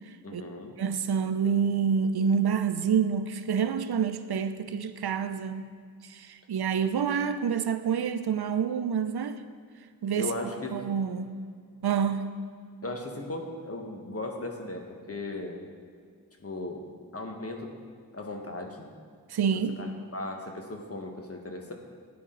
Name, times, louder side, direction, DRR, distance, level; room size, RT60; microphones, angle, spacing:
voice 1, 0.2-0.7 10.2-10.8 12.8-15.6 16.4-16.9 17.1-17.7 18.1-18.9 19.5-21.7, left 2 dB, 40° left, 3 dB, 1.4 m, -37 dB
voice 2, 0.8-5.6 6.0-9.4 10.0-10.3 10.7-11.4 11.8-12.3 19.3-19.8, right 7 dB, 80° right, 10 dB, 0.7 m, -27 dB
13.0 x 9.4 x 3.9 m, 2.1 s
wide cardioid pair, 80°, 38 cm